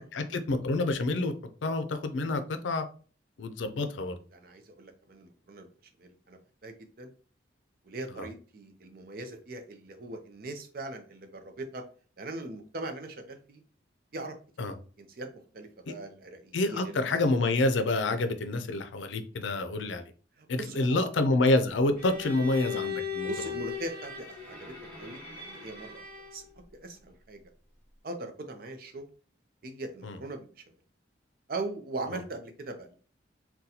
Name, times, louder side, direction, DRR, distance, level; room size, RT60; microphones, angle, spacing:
voice 1, 0.1-1.3 1.6-2.8 3.4-4.2 8.2-8.3 14.6-14.7 15.9-16.0 16.5-20.0 20.5-23.3 30.0-30.2, left 2 dB, 90° left, 8 dB, 0.5 m, -28 dB
voice 2, 4.3-5.7 6.0-7.1 7.8-11.8 12.2-13.6 14.1-14.7 15.0-17.0 20.4-21.0 23.3-26.1 26.3-26.4 26.8-27.4 28.0-29.1 29.6-30.6 31.5-32.9, right 2 dB, 50° right, 5 dB, 0.5 m, -40 dB
Bowed string instrument, 22.0-26.5, left 6 dB, 5° left, 1.4 m, -38 dB
3.9 x 2.2 x 2.7 m, 0.40 s
head